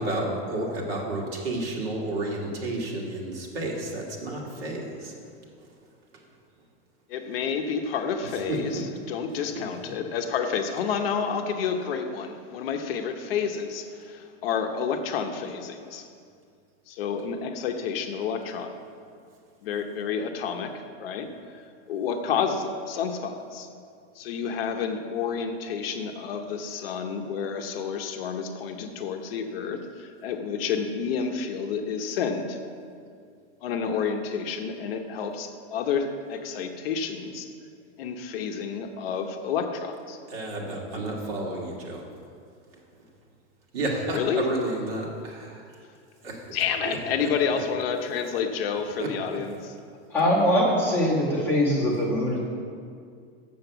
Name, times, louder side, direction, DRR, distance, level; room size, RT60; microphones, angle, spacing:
voice 1, 0.0-5.1 8.5-8.8 9.5-9.6 40.3-42.0 43.7-45.8 46.2-46.4 46.8-47.3 49.0-49.1, right 2 dB, 60° right, -2 dB, 2.2 m, -31 dB
voice 2, 7.1-16.1 16.9-18.8 19.6-21.6 21.9-23.7 24.2-32.6 33.6-37.5 38.0-40.2 44.1-44.4 46.5-49.7, left 6 dB, 55° left, 5 dB, 0.8 m, -30 dB
voice 3, 50.1-52.4, left 1 dB, 5° left, -7 dB, 1.4 m, -22 dB
7.7 x 7.0 x 6.8 m, 2.2 s
supercardioid pair, 175°, 34 cm